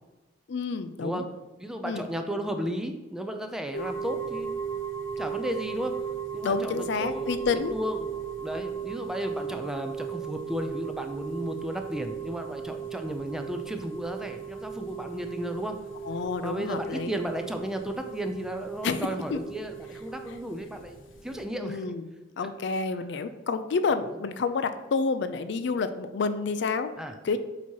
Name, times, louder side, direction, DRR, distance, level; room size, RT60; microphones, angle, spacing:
voice 1, 0.5-1.2 1.8-2.0 6.4-7.8 16.0-17.1 18.8-19.4 21.6-22.0 22.4-26.9 27.2-27.4, left 4 dB, 65° left, 10 dB, 0.4 m, -29 dB
voice 2, 1.0-1.3 1.6-4.5 5.2-6.0 6.3-7.4 7.7-15.8 16.4-21.0 21.2-22.0 22.4-22.5 22.9-23.0 27.0-27.2, equal, 5° right, 5 dB, 0.4 m, -34 dB
sound 1, 3.7-21.4, right 7 dB, 90° left, 0.8 m, -37 dB
8.1 x 2.9 x 4.6 m, 1.1 s
head